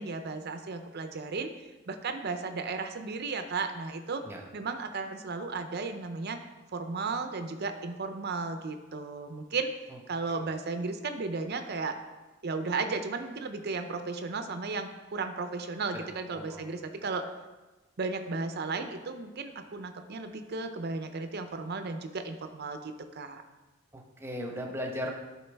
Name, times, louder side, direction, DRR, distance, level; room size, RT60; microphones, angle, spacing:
voice 1, 0.0-4.2 4.5-6.4 6.7-9.7 10.1-12.0 12.4-17.3 18.0-23.4, right 4 dB, 55° right, 7 dB, 0.6 m, -34 dB
voice 2, 16.3-16.7 23.9-25.1, equal, 10° right, 1 dB, 0.9 m, -37 dB
12.0 x 4.7 x 3.4 m, 1.2 s
head